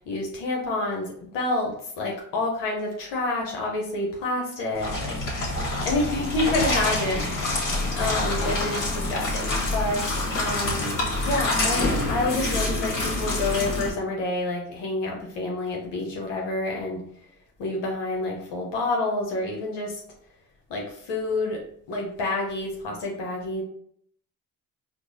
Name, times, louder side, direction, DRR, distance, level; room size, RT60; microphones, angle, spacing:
voice 1, 0.1-5.2 5.8-7.7 7.9-17.0 17.6-20.0 20.7-23.6, left 2 dB, 65° left, -1 dB, 0.9 m, -28 dB
sound 1, 4.7-13.9, left 2 dB, 40° left, 1.3 m, -26 dB
4.5 x 2.2 x 2.6 m, 0.65 s
hypercardioid pair, 50°, 46 cm